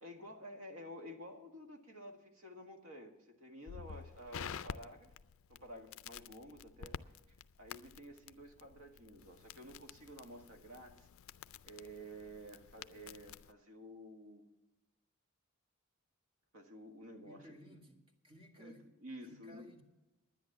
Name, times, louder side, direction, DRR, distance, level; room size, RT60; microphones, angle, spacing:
voice 1, 0.0-5.1 5.5-11.1 11.6-14.4 16.5-17.8 18.6-19.7, equal, 80° right, 4 dB, 1.7 m, -52 dB
Crackle, 3.7-13.5, left 7 dB, 65° left, 0.4 m, -50 dB
voice 2, 17.2-18.8 19.2-19.8, equal, 25° right, 1 dB, 1.9 m, -58 dB
10.5 x 10.0 x 7.2 m, 1.0 s
head